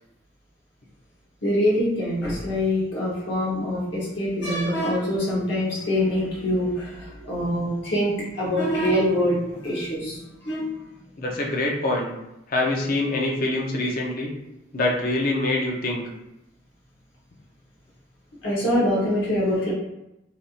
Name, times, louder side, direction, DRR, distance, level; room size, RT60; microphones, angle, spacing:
voice 1, 1.4-10.7 18.4-19.7, left 1 dB, 60° left, -5 dB, 1.1 m, -24 dB
voice 2, 11.2-12.1 12.5-14.3 14.7-16.0, left 2 dB, 45° left, -1 dB, 0.6 m, -24 dB
3.4 x 2.6 x 2.4 m, 0.89 s
head